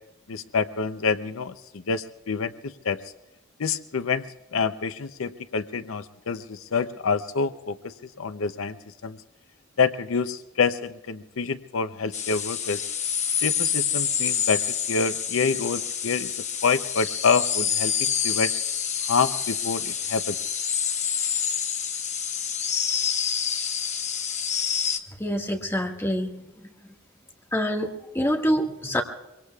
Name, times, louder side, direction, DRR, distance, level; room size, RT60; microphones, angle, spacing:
voice 1, 0.3-1.5 1.9-3.0 3.6-4.2 4.5-8.8 9.0-9.2 9.8-12.8 13.4-16.3 16.6-18.5 19.1-20.4, left 5 dB, 80° left, 11 dB, 0.6 m, -27 dB
sound 1, 12.1-25.0, left 7 dB, 35° left, 1.1 m, -27 dB
voice 2, 25.2-26.4 27.5-29.0, equal, 15° left, 1 dB, 1.7 m, -26 dB
24.5 x 23.5 x 2.4 m, 1.0 s
head